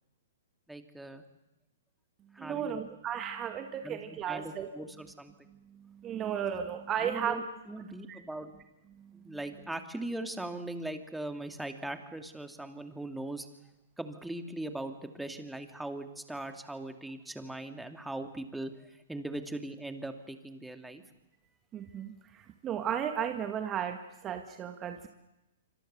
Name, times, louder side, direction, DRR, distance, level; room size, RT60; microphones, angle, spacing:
voice 1, 0.7-1.2 2.3-2.8 3.8-4.0 4.3-5.3 7.0-8.6 9.1-13.5 14.0-21.0, right 1 dB, 5° right, 6 dB, 2.4 m, -40 dB
voice 2, 2.4-4.7 5.7-7.4 8.1-8.2 9.0-9.4 21.7-25.1, right 9 dB, 25° right, 6 dB, 1.8 m, -35 dB
26.0 x 26.0 x 6.9 m, 0.96 s
hypercardioid pair, 125°, 0 cm